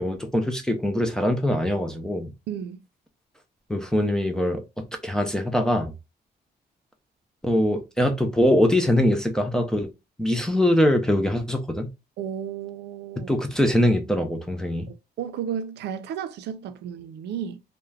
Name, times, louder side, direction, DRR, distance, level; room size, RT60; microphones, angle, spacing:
voice 1, 0.0-2.3 3.7-4.6 5.0-5.9 7.4-9.9 10.2-11.9 13.3-14.9, left 1 dB, 5° left, 0.3 m, -22 dB
voice 2, 2.5-2.8 12.2-13.3 14.9-17.6, right 8 dB, 85° right, 0.4 m, -33 dB
2.3 x 2.1 x 3.2 m
cardioid pair, 160°, 17 cm